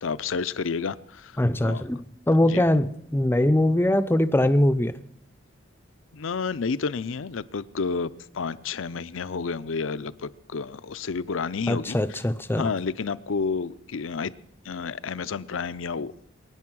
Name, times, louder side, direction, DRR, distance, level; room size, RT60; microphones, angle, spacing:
voice 1, 0.0-1.8 2.5-2.6 6.1-12.2 12.6-14.3 14.6-16.1, left 5 dB, 70° left, 16 dB, 0.6 m, -30 dB
voice 2, 1.4-4.9 11.7-12.7, left 1 dB, 10° left, 11 dB, 0.5 m, -22 dB
23.5 x 9.5 x 6.2 m, 0.76 s
head